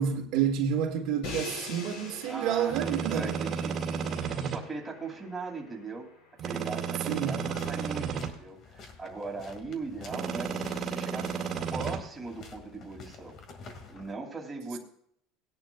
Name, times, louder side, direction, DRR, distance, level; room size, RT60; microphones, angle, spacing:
voice 1, 0.0-3.4 7.1-7.4, right 8 dB, 60° right, 1.7 m, -29 dB
Crash cymbal, 1.2-7.2, left 3 dB, 60° left, 3.8 m, -44 dB
voice 2, 2.3-6.1 6.4-11.3 11.7-13.4 13.9-14.8, right 3 dB, 10° right, 2.5 m, -39 dB
sound 1, 2.7-4.6 6.4-8.3 10.1-12.0, right 6 dB, 35° right, 2.1 m, -32 dB
sound 2, 7.3-14.1, left 4 dB, 40° left, 2.0 m, -49 dB
18.5 x 10.5 x 2.3 m
cardioid pair, 150°, 0 cm